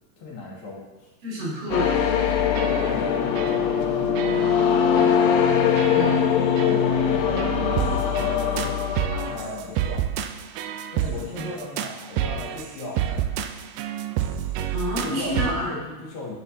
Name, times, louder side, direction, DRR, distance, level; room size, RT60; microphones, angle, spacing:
voice 1, 0.2-1.1 2.7-6.0 6.6-8.8 9.0-10.1 10.9-13.3 13.8-13.9 15.0-16.4, left 2 dB, 70° left, -4 dB, 3.8 m, -36 dB
voice 2, 1.2-1.9 5.9-6.7 14.7-15.7, equal, 65° right, -6 dB, 4.9 m, -29 dB
sound 1, 1.7-9.6, left 7 dB, 85° left, 2.6 m, -22 dB
sound 2, 1.9-2.2 2.5-3.1 3.4-3.8 4.2-4.7 5.0-5.2 5.8-6.3 6.6-6.8 7.4-15.5, right 10 dB, 85° right, 1.9 m, -30 dB
11.0 x 10.0 x 2.7 m, 1.1 s
omnidirectional pair, 4.4 m